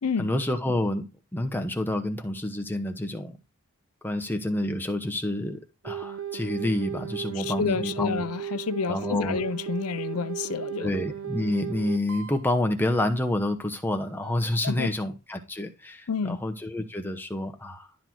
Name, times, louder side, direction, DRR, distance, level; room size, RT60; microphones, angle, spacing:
voice 1, 0.2-1.1 1.3-3.4 4.0-8.2 8.9-9.4 10.8-17.9, left 1 dB, 10° left, 0.9 m, -28 dB
sound 1, 5.8-12.4 14.2-14.4, right 9 dB, 75° right, 0.7 m, -36 dB
voice 2, 7.3-10.9 14.6-14.9 16.1-16.4, left 5 dB, 80° left, 0.5 m, -29 dB
11.5 x 4.0 x 4.5 m
head